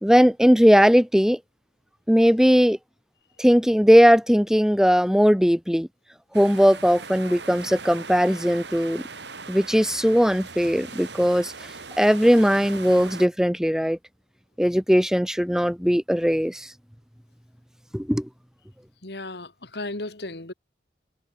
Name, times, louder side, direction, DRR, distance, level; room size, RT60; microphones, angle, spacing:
voice 1, 0.0-1.4 2.1-2.8 3.4-5.9 6.3-9.0 9.5-11.5 12.0-14.0 14.6-16.7 17.9-18.3, equal, 5° right, 1.6 m, -19 dB
sound 1, 6.3-13.3, right 4 dB, 75° right, 7.8 m, -39 dB
voice 2, 19.0-20.5, left 2 dB, 65° left, 2.4 m, -35 dB
head